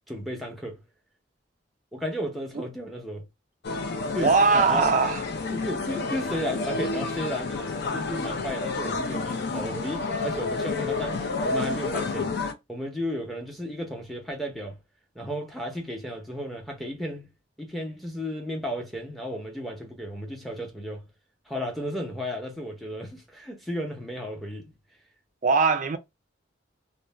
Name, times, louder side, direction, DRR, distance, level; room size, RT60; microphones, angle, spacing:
voice 1, 0.1-0.8 1.9-3.2 4.1-4.8 5.5-12.4 12.7-14.8 15.1-17.3 17.6-21.1 21.5-24.7, equal, ahead, 0.6 m, -34 dB
sound 1, 3.6-12.5, left 3 dB, 55° left, 0.4 m, -30 dB
voice 2, 4.2-5.2 25.4-26.0, right 4 dB, 40° right, 0.4 m, -20 dB
2.4 x 2.1 x 3.2 m
head